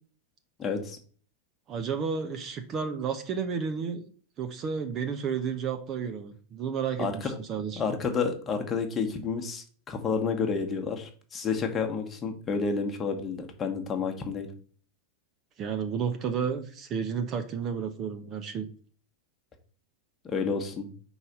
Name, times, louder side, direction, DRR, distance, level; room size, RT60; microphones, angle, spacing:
voice 1, 0.6-1.0 7.0-7.4 7.8-14.5 20.2-20.9, left 5 dB, 20° left, 3 dB, 1.3 m, -30 dB
voice 2, 1.7-4.1 4.4-7.8 15.6-18.7, right 6 dB, 30° right, 6 dB, 0.8 m, -32 dB
5.5 x 4.0 x 5.9 m, 0.43 s
figure-of-eight pair, 90°, 0 cm